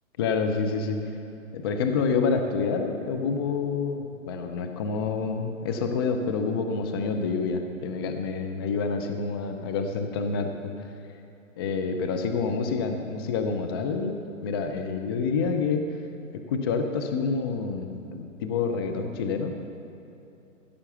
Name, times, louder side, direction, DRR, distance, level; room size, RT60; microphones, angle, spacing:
voice 1, 0.2-1.0 1.5-10.5 11.6-14.2 14.4-15.9 16.5-19.5, left 5 dB, 20° left, 5 dB, 0.4 m, -27 dB
15.0 x 6.9 x 6.8 m, 2.9 s
hypercardioid pair, 145°, 41 cm